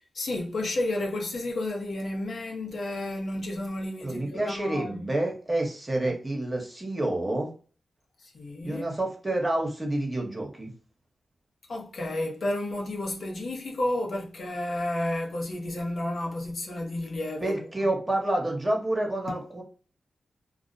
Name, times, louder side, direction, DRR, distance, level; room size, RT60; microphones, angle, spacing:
voice 1, 0.1-5.1 6.1-6.2 8.2-8.8 11.7-17.9, left 1 dB, 70° left, 0.7 m, -31 dB
voice 2, 4.0-7.5 8.6-10.7 17.4-19.6, right 1 dB, 25° right, 1.0 m, -28 dB
2.3 x 2.1 x 2.6 m
cardioid pair, 45°, 0 cm